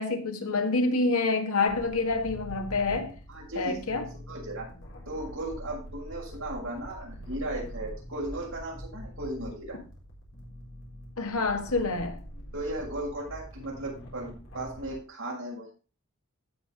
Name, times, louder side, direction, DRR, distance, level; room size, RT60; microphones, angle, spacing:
voice 1, 0.0-3.1 3.6-4.1 11.2-12.2, left 3 dB, 85° left, 1.7 m, -27 dB
sound 1, 1.7-14.9, equal, 60° left, 4.0 m, -44 dB
voice 2, 3.3-4.7 5.0-9.8 12.5-15.7, right 1 dB, 70° right, 6.3 m, -36 dB
16.0 x 5.7 x 3.7 m
head